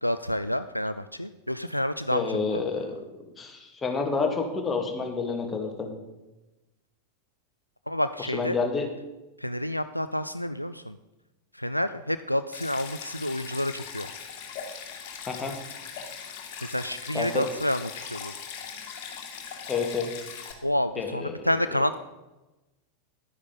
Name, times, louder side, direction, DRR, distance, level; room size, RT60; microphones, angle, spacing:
voice 1, 0.0-2.6 7.9-8.6 9.4-11.0 11.5-14.1 16.6-18.3 20.6-21.9, left 1 dB, 90° left, 11 dB, 0.4 m, -29 dB
voice 2, 2.1-5.9 8.3-8.9 15.3-15.5 17.1-17.4 19.7-20.1 21.0-21.5, left 4 dB, 15° left, 3 dB, 2.0 m, -29 dB
Stream, 12.5-20.5, left 7 dB, 45° left, 2.2 m, -40 dB
11.5 x 9.7 x 5.2 m, 1.0 s
figure-of-eight pair, 90°, 0 cm